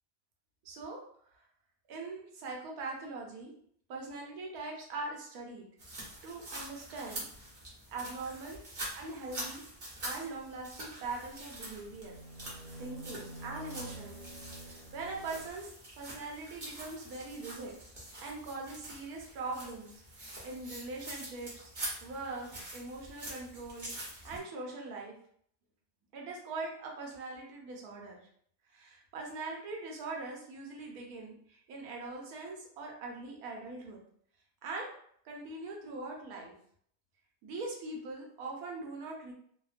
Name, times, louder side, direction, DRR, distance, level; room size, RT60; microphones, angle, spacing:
voice 1, 0.6-1.0 1.9-3.5 3.9-5.7 6.2-7.2 7.9-8.6 8.9-9.6 10.0-12.1 12.8-14.2 14.7-17.7 18.2-21.7 22.0-23.9 24.2-25.1 26.1-28.2 28.7-34.0 34.6-34.9 35.2-36.5 37.4-39.3, right 3 dB, 70° right, 0 dB, 1.1 m, -42 dB
sound 1, 5.8-24.4, right 1 dB, 45° right, 0.6 m, -45 dB
sound 2, 11.1-15.5, right 1 dB, 85° right, 1.3 m, -49 dB
2.8 x 2.0 x 2.4 m, 0.63 s
omnidirectional pair, 1.8 m